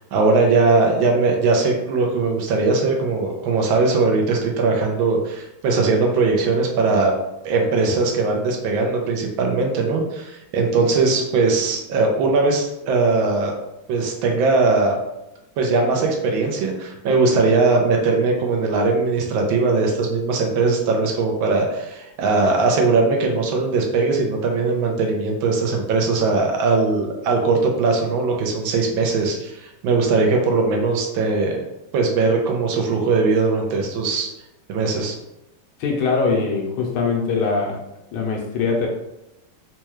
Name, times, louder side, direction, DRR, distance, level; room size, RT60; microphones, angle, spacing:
voice 1, 0.1-7.1 7.4-13.5 13.9-15.0 15.6-31.6 31.9-34.3 34.7-35.1, right 3 dB, 75° right, 1 dB, 1.3 m, -20 dB
voice 2, 35.8-37.8 38.1-38.9, left 4 dB, 85° left, -1 dB, 1.7 m, -22 dB
4.3 x 2.3 x 3.0 m, 0.90 s
omnidirectional pair, 2.3 m